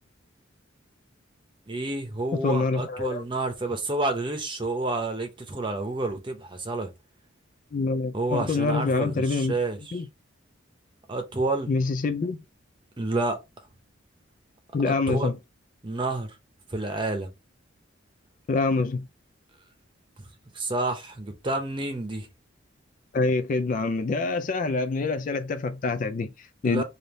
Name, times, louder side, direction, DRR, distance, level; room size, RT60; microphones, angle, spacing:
voice 1, 1.7-6.9 8.1-10.0 11.1-11.7 13.0-13.4 14.9-15.3 15.8-16.3 16.7-17.3 20.5-22.3 26.6-26.8, right 2 dB, 25° right, 0.8 m, -29 dB
voice 2, 2.4-3.3 7.7-9.5 9.9-10.1 11.7-12.4 14.7-15.3 18.5-19.1 23.1-26.8, left 3 dB, 40° left, 0.3 m, -26 dB
3.5 x 2.7 x 3.8 m
head